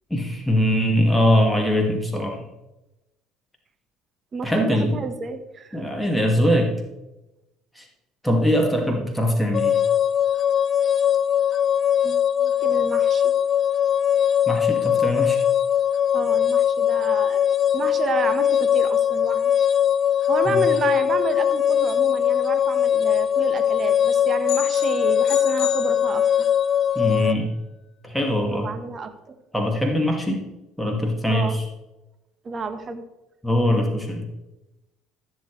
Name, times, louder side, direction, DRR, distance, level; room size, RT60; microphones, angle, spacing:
voice 1, 0.1-2.4 4.4-5.0 5.7-6.8 7.8-7.9 8.2-9.8 14.5-15.4 20.5-20.7 27.0-27.5 28.0-28.7 29.5-30.4 30.8-31.6 33.4-34.3, equal, 5° left, 1 dB, 2.3 m, -22 dB
voice 2, 4.3-5.8 12.0-13.3 16.1-19.6 20.3-26.5 28.5-29.4 31.3-31.6 32.4-33.0, right 4 dB, 40° right, 8 dB, 1.3 m, -30 dB
sound 1, 9.5-27.3, left 9 dB, 45° left, 0.4 m, -21 dB
sound 2, 24.5-26.6, left 9 dB, 65° left, 1.9 m, -33 dB
15.0 x 7.4 x 3.3 m, 0.97 s
hypercardioid pair, 65°, 0 cm